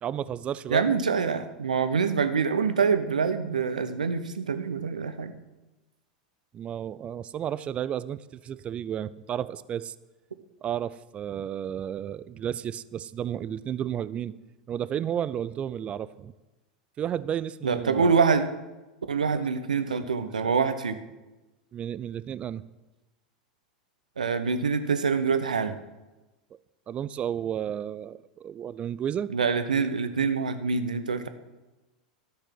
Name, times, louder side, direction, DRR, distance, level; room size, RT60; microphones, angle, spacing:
voice 1, 0.0-0.9 6.5-9.9 10.6-14.3 14.7-16.3 17.0-18.2 19.3-19.4 19.9-20.1 20.4-20.5 21.7-22.6 26.9-29.3, right 9 dB, 30° right, 17 dB, 0.4 m, -32 dB
voice 2, 0.7-5.3 17.6-18.5 19.1-21.0 24.2-25.8 29.3-31.3, right 5 dB, 80° right, 10 dB, 0.8 m, -25 dB
12.5 x 6.7 x 5.9 m, 1.1 s
figure-of-eight pair, 90°, 4 cm